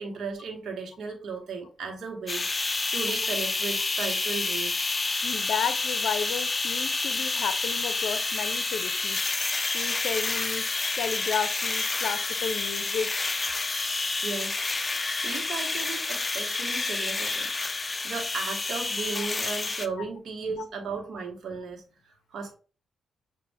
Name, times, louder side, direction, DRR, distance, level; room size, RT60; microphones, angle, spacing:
voice 1, 0.0-2.6 2.9-4.9 14.2-14.7 15.2-17.5 17.8-22.5, right 4 dB, 70° right, 2 dB, 1.2 m, -36 dB
sound 1, 2.3-19.9, left 3 dB, 30° left, 0.5 m, -29 dB
voice 2, 5.2-9.2 9.7-10.6 11.0-13.1 19.2-19.3 20.6-20.7, left 7 dB, 80° left, 12 dB, 0.5 m, -32 dB
6.2 x 2.5 x 3.4 m, 0.36 s
cardioid pair, 65°, 0 cm